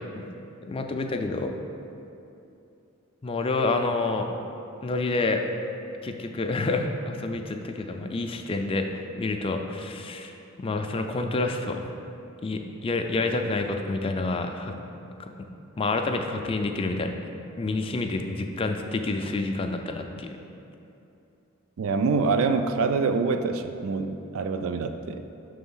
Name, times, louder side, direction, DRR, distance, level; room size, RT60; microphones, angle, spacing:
voice 1, 0.7-1.6 3.2-4.3 4.8-5.4 6.0-8.9 9.2-11.9 12.4-14.7 15.2-15.3 15.8-17.1 17.6-20.3, left 3 dB, 25° left, 5 dB, 0.4 m, -28 dB
voice 2, 21.8-25.2, right 4 dB, 75° right, 8 dB, 0.4 m, -25 dB
6.3 x 3.4 x 5.5 m, 2.8 s
head